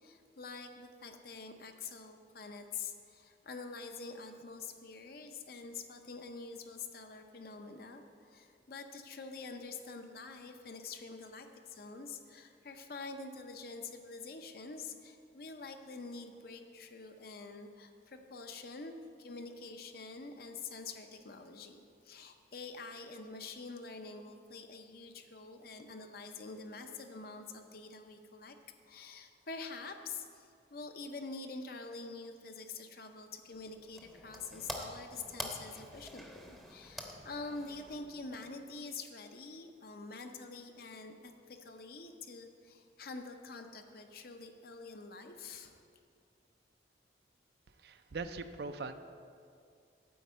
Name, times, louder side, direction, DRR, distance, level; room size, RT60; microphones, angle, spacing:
voice 1, 0.0-28.6 28.9-45.9, left 4 dB, 55° left, 6 dB, 0.6 m, -46 dB
sound 1, 33.5-38.9, equal, ahead, 0.7 m, -47 dB
voice 2, 47.8-48.9, right 3 dB, 60° right, 9 dB, 0.4 m, -41 dB
9.3 x 4.5 x 7.3 m, 2.3 s
head